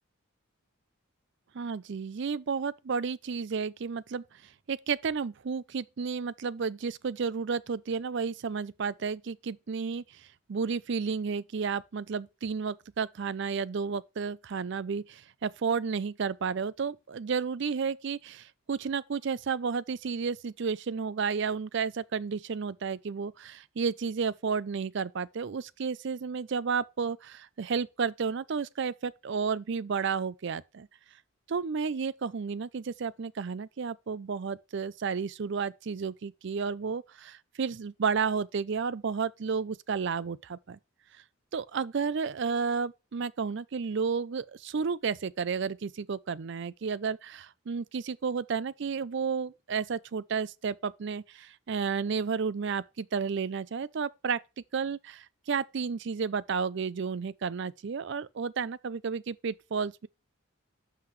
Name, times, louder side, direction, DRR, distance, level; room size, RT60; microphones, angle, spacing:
voice 1, 1.5-4.2 4.7-10.0 10.5-30.9 31.5-40.8 41.5-54.4 54.7-60.1, right 5 dB, 60° right, 0.5 m, -32 dB
11.5 x 5.8 x 3.2 m
head